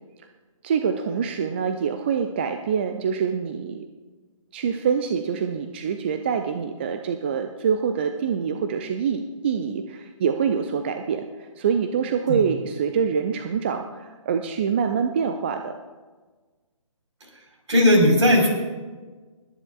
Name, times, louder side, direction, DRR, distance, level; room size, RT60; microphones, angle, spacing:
voice 1, 0.6-3.8 4.5-11.3 11.6-15.7, right 6 dB, 20° right, 7 dB, 0.4 m, -25 dB
voice 2, 17.7-18.5, left 1 dB, 55° right, 2 dB, 4.3 m, -16 dB
28.5 x 10.0 x 2.4 m, 1.3 s
figure-of-eight pair, 140°, 18 cm